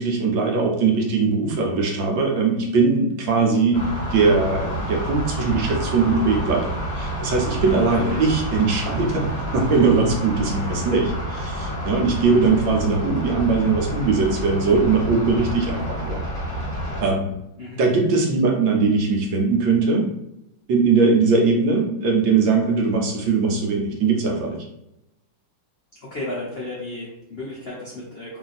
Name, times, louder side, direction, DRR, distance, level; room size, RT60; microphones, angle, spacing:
voice 1, 0.0-3.8 4.1-16.2 17.0-17.3 17.8-20.1 20.7-24.6, right 4 dB, 70° right, 0 dB, 1.4 m, -20 dB
sound 1, 3.7-17.0, right 1 dB, 30° left, 1.0 m, -29 dB
voice 2, 7.6-8.2 17.6-17.8 26.0-28.4, left 2 dB, 70° left, -6 dB, 0.5 m, -34 dB
3.3 x 2.6 x 4.0 m, 0.84 s
omnidirectional pair, 2.2 m